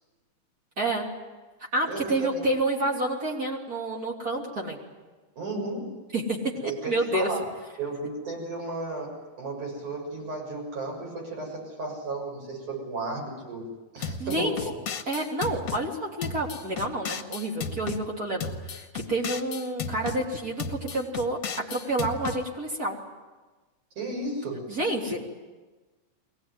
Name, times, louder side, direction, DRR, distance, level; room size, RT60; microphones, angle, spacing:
voice 1, 0.8-1.1 1.7-4.8 6.1-6.4 6.6-7.3 14.0-14.5 15.1-21.4 21.7-23.0 24.7-25.2, right 2 dB, 30° right, -1 dB, 3.5 m, -29 dB
voice 2, 1.9-2.4 5.4-5.9 6.6-7.4 7.8-13.7 13.9-14.7 24.0-24.7, right 2 dB, 85° right, -1 dB, 8.2 m, -34 dB
sound 1, 14.0-15.8 16.2-18.0 18.4-20.2 20.6-22.4, left 6 dB, 60° left, 1.9 m, -34 dB
23.0 x 18.5 x 9.5 m, 1.3 s
omnidirectional pair, 3.4 m